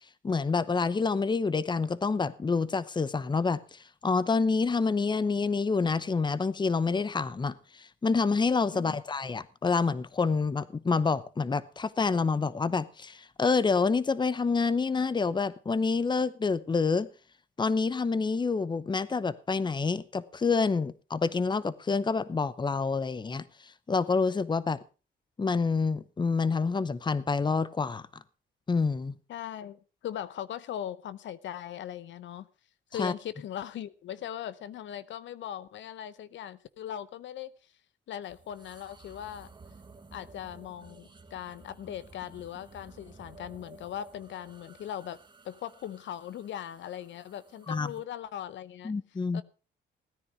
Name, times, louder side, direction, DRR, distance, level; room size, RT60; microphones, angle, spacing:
voice 1, 0.2-17.1 17.6-23.4 23.9-24.8 25.4-28.1 28.7-29.2 32.9-33.1 47.7-47.9 48.8-49.4, left 4 dB, 20° left, 0.8 m, -27 dB
voice 2, 29.3-32.5 32.9-37.5 38.1-39.5 40.1-45.2 45.4-48.9 49.3-49.4, left 10 dB, 70° left, 0.7 m, -39 dB
sound 1, 38.2-48.0, right 3 dB, 25° right, 1.8 m, -54 dB
17.0 x 9.9 x 4.9 m
cardioid pair, 90°, 20 cm